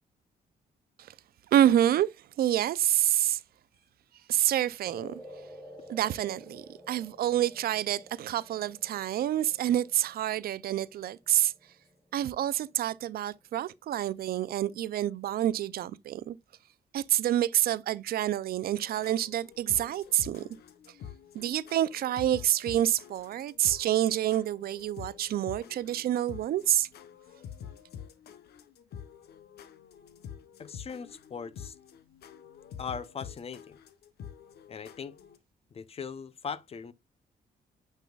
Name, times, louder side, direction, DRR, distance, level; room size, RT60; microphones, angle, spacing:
voice 1, 1.5-2.1 2.4-3.4 4.3-5.2 5.9-11.5 12.1-16.4 16.9-20.5 21.3-26.9, right 12 dB, 65° right, 0.4 m, -27 dB
sound 1, 4.9-13.4, equal, 5° left, 1.2 m, -51 dB
sound 2, 18.8-35.4, left 8 dB, 70° left, 0.9 m, -47 dB
voice 2, 30.6-31.8 32.8-33.8 34.7-35.2 35.7-36.9, left 6 dB, 35° left, 0.6 m, -39 dB
9.1 x 5.5 x 2.3 m
cardioid pair, 125°, 17 cm